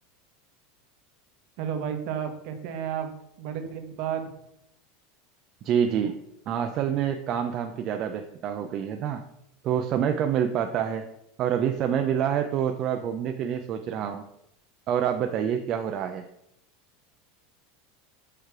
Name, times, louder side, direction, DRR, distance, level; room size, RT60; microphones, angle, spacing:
voice 1, 1.6-3.1 3.4-4.3, right 8 dB, 55° right, 6 dB, 1.1 m, -32 dB
voice 2, 5.6-6.2 6.5-9.2 9.6-11.0 11.4-14.2 14.9-16.3, right 8 dB, 40° right, 6 dB, 0.4 m, -27 dB
6.5 x 3.3 x 5.9 m, 0.81 s
supercardioid pair, 140°, 0 cm